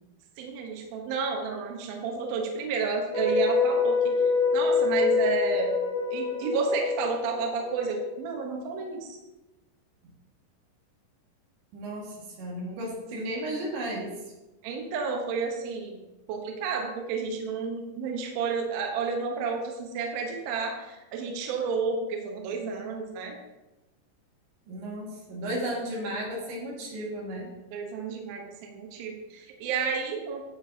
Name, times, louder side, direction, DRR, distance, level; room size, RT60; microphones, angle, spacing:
voice 1, 0.4-5.8 6.1-9.2 14.6-16.0 16.3-23.4 27.7-30.4, right 5 dB, 70° right, 1 dB, 2.6 m, -31 dB
sound 1, 3.1-8.3, left 5 dB, 75° left, 3.6 m, -26 dB
voice 2, 11.7-14.2 24.7-27.5, right 1 dB, 85° right, -3 dB, 4.2 m, -34 dB
12.0 x 7.1 x 2.8 m, 1.1 s
omnidirectional pair, 5.0 m